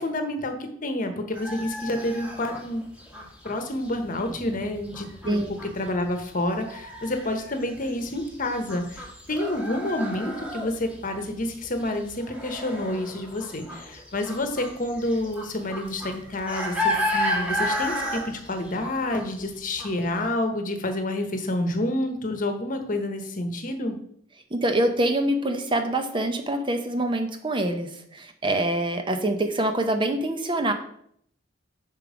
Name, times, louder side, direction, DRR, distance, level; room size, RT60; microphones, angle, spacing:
voice 1, 0.0-2.8 3.4-5.4 5.7-24.0, left 1 dB, 45° left, 6 dB, 1.1 m, -29 dB
sound 1, 1.3-11.0 11.3-20.2, left 1 dB, 5° right, 1.7 m, -33 dB
voice 2, 24.5-30.7, right 1 dB, 25° right, 6 dB, 0.8 m, -25 dB
6.0 x 5.4 x 5.0 m, 0.67 s
head